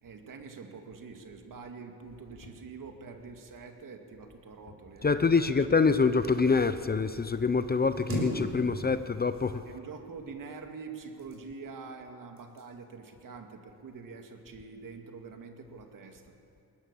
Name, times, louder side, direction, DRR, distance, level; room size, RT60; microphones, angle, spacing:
voice 1, 0.0-5.5 9.7-16.3, right 4 dB, 55° right, 4 dB, 2.4 m, -45 dB
sound 1, 2.4-2.7 4.7-4.9 5.3-5.4 6.6-6.9 8.4-8.7, left 5 dB, 80° left, 3.3 m, -54 dB
voice 2, 5.0-9.6, left 4 dB, 25° left, 12 dB, 0.7 m, -25 dB
sound 2, 7.9-9.0 9.3-10.0 10.9-11.7 12.4-12.7 13.1-13.4, right 1 dB, 35° right, 6.0 m, -37 dB
21.0 x 19.5 x 7.0 m, 2.7 s
cardioid pair, 85°, 39 cm